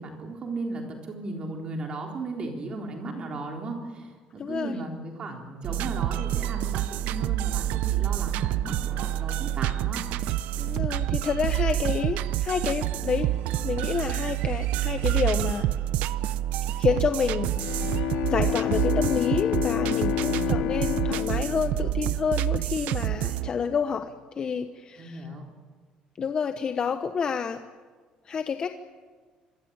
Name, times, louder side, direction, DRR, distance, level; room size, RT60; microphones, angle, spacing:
voice 1, 0.0-10.1 20.2-20.6 25.0-25.4, right 2 dB, 40° right, 2 dB, 3.8 m, -36 dB
voice 2, 4.4-4.8 10.6-13.3 13.6-15.7 16.8-25.3 26.2-27.6 28.2-28.7, left 6 dB, 35° left, 8 dB, 1.1 m, -29 dB
sound 1, 5.6-23.5, right 13 dB, 85° right, 0.8 m, -28 dB
Bowed string instrument, 17.5-22.7, left 13 dB, 90° left, 1.0 m, -29 dB
25.5 x 22.5 x 8.9 m, 1.5 s
cardioid pair, 140°, 2 cm